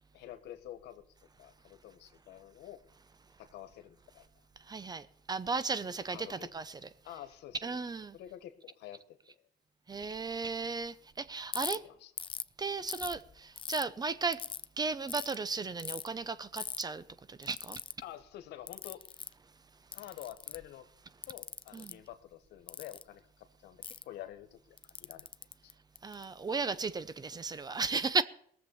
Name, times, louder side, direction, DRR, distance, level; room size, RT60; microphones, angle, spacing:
voice 1, 0.1-1.1 1.4-2.8 3.4-4.2 6.1-6.5 7.0-7.8 8.1-9.4 11.8-12.1 18.0-19.0 19.9-20.9 21.3-25.3, left 12 dB, 80° left, 1.5 m, -48 dB
voice 2, 4.7-6.9 7.6-8.2 9.9-11.8 12.6-14.4 14.8-17.0 17.3-17.8 21.7-22.0 26.0-28.2, right 4 dB, 25° right, 0.8 m, -35 dB
Ratchet pawl, 11.5-11.8 12.2-12.5 12.9-13.8 14.3-14.6 15.1-15.3 15.8-16.1 16.6-16.8 17.4-17.9 18.7-19.3 19.9-20.7 21.2-21.9 22.7-23.0 23.8-24.0 24.8-26.2, left 7 dB, 30° left, 0.5 m, -40 dB
19.0 x 7.5 x 8.7 m
cardioid pair, 110°, 17 cm